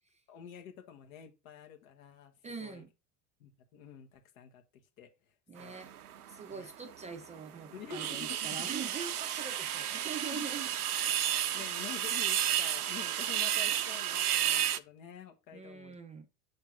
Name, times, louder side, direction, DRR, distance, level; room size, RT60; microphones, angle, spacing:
voice 1, 0.3-2.3 2.6-2.8 3.4-4.6 5.0-5.1 5.6-5.8 6.5-6.7 7.7-8.7 10.3-10.4 11.5-16.0, left 9 dB, 60° left, 1.6 m, -48 dB
voice 2, 2.4-2.9 5.5-5.9 6.3-10.7 11.6-11.7 15.5-16.3, right 5 dB, 15° right, 0.6 m, -43 dB
sound 1, 5.6-6.5 6.9-7.0 7.4-7.5 7.6-14.8, right 11 dB, 75° right, 0.6 m, -32 dB
6.6 x 3.5 x 5.7 m
figure-of-eight pair, 80°, 46 cm